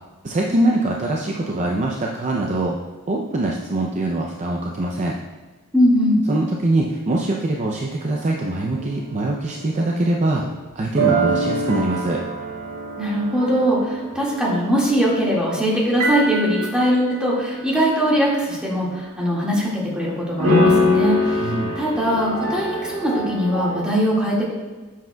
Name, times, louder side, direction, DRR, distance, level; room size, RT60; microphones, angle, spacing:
voice 1, 0.2-2.8 3.1-5.2 6.3-10.5 10.8-12.2 21.3-21.8, right 2 dB, 35° right, -1 dB, 0.5 m, -23 dB
voice 2, 5.7-6.2 13.0-21.5 21.8-24.4, equal, 5° right, -6 dB, 1.9 m, -21 dB
sound 1, 8.1-18.4 18.9-19.0 20.4-23.8, equal, 75° right, 1.8 m, -25 dB
9.2 x 7.5 x 2.3 m, 1.3 s
head